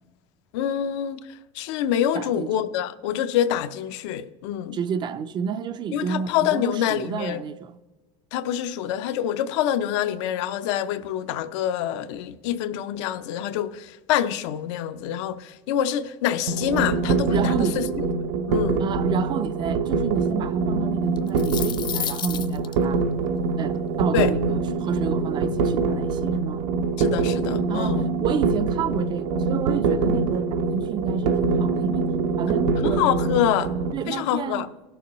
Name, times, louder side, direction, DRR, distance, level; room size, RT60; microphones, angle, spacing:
voice 1, 0.5-4.8 5.9-7.4 8.3-17.9 18.5-18.9 24.1-24.3 27.0-28.1 32.8-33.7 34.1-34.7, left 10 dB, 80° left, 0.6 m, -26 dB
voice 2, 2.1-2.5 4.7-7.7 17.3-17.8 18.8-23.1 23.6-26.6 27.7-32.1 32.4-33.1 33.9-34.7, right 7 dB, 30° right, 0.4 m, -30 dB
sound 1, 16.5-33.9, right 4 dB, 75° right, 0.8 m, -24 dB
sound 2, 21.2-22.7, left 8 dB, 30° left, 0.5 m, -30 dB
16.5 x 7.0 x 3.0 m
supercardioid pair, 135°, 15 cm